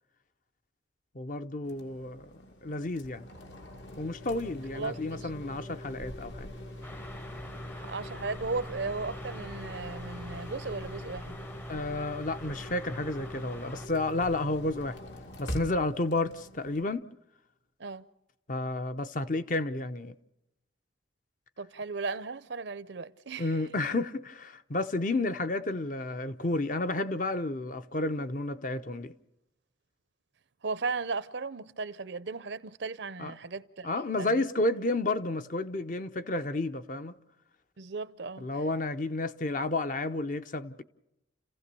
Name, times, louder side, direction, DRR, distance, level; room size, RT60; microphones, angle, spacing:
voice 1, 1.1-2.3 2.6-3.3 4.0-6.5 11.7-15.0 15.4-17.1 18.5-20.1 23.4-29.1 33.2-33.3 33.8-37.1 38.4-40.8, left 2 dB, 45° left, 0.7 m, -31 dB
sound 1, 1.6-16.8, equal, 75° left, 2.3 m, -43 dB
voice 2, 4.7-5.3 7.8-11.4 17.8-18.1 21.6-23.5 30.6-33.9 34.2-34.4 37.8-38.5, right 4 dB, 70° right, 0.7 m, -36 dB
sound 2, 6.8-13.9, left 1 dB, 10° left, 0.7 m, -47 dB
30.0 x 16.0 x 6.9 m
head